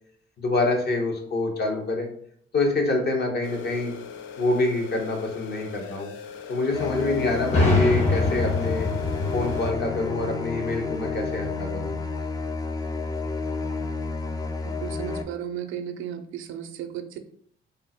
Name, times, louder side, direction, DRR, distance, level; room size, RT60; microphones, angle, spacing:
voice 1, 0.4-2.1 2.5-3.9 4.4-6.1 6.5-8.9 9.3-11.9, left 2 dB, 55° left, 1 dB, 1.1 m, -26 dB
sound 1, 3.4-9.7, left 6 dB, 80° left, 0.5 m, -41 dB
sound 2, 6.7-15.2, left 4 dB, 20° left, 0.4 m, -31 dB
sound 3, 7.5-11.2, left 3 dB, 35° left, 1.2 m, -25 dB
voice 2, 14.6-17.2, right 9 dB, 90° right, 7 dB, 0.5 m, -34 dB
3.6 x 2.0 x 4.2 m, 0.64 s
cardioid pair, 90°, 20 cm